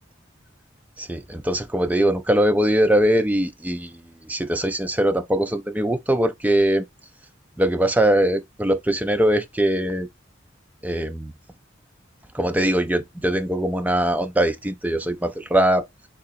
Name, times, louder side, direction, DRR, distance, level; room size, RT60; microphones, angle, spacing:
voice 1, 1.0-6.8 7.6-10.1 10.8-11.3 12.3-15.9, right 1 dB, 10° right, 0.4 m, -21 dB
3.7 x 2.9 x 4.1 m
head